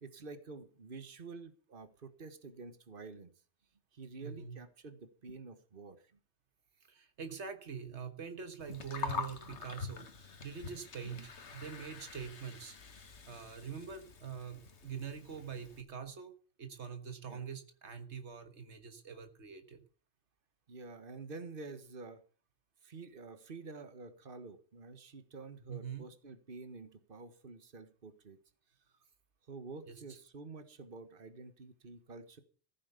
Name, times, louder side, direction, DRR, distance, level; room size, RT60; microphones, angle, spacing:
voice 1, 0.0-3.3 3.9-6.0 17.3-17.4 20.7-22.2 22.8-28.4 29.5-32.4, right 3 dB, 50° right, 10 dB, 1.6 m, -49 dB
voice 2, 4.2-4.6 6.9-12.8 13.3-16.3 16.6-19.8 25.7-26.1 29.9-30.0, right 6 dB, 85° right, 8 dB, 1.7 m, -44 dB
Gurgling, 8.6-15.8, left 5 dB, 80° left, 1.7 m, -45 dB
15.0 x 8.6 x 6.7 m, 0.41 s
omnidirectional pair, 1.1 m